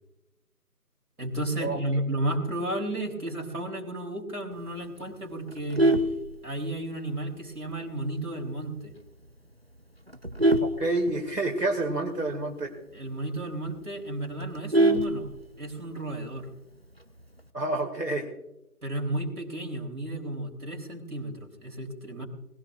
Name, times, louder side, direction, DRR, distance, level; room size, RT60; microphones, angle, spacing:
voice 1, 1.2-5.8 6.4-8.9 12.9-15.3 15.6-16.5 18.8-22.2, right 1 dB, 65° right, 1 dB, 3.5 m, -33 dB
Vehicle horn car horn honking, 5.5-7.0 7.4-7.7 8.0-8.1 8.5-8.6 8.9-9.3 9.8-11.7 12.0-12.1 12.4-12.5 12.9-13.0 13.4-13.5 13.7-15.8 17.0-17.4, right 1 dB, 40° right, 0.6 m, -25 dB
voice 2, 10.6-12.7 17.5-18.3, right 2 dB, 90° right, 1 dB, 2.3 m, -28 dB
19.5 x 17.0 x 2.5 m, 0.95 s
figure-of-eight pair, 165°, 47 cm